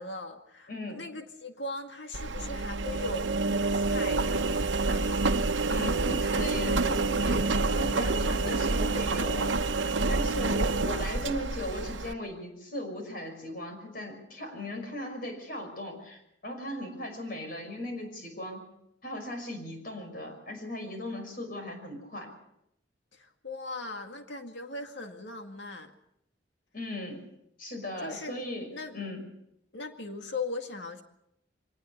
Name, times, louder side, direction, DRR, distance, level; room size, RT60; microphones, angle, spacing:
voice 1, 0.0-5.4 10.7-11.2 23.1-25.9 28.0-28.3 28.7-29.0 29.7-31.0, left 2 dB, 70° left, 5 dB, 2.0 m, -39 dB
voice 2, 0.7-1.0 5.6-9.6 10.1-18.6 19.0-22.3 26.7-27.2 27.6-29.2, left 1 dB, 50° left, 4 dB, 5.8 m, -37 dB
Engine, 2.1-12.1, right 3 dB, 85° right, 1.0 m, -28 dB
24.0 x 19.0 x 6.7 m, 0.79 s
head